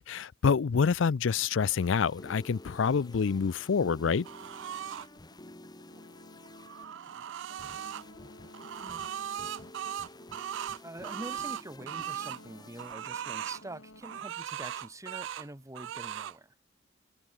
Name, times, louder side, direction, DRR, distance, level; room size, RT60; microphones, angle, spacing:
voice 1, 0.0-4.3, left 6 dB, 70° left, 0.5 m, -27 dB
sound 1, 1.4-15.2, left 2 dB, 90° left, 6.4 m, -57 dB
sound 2, 1.4-14.2, left 1 dB, 20° left, 1.7 m, -51 dB
sound 3, 4.3-5.1 6.5-8.0 8.5-12.4 12.8-13.6 14.0-15.5 15.8-16.4, right 9 dB, 65° right, 0.4 m, -38 dB
voice 2, 7.0-7.8 8.8-9.0 10.8-16.5, right 1 dB, 15° right, 1.5 m, -45 dB
head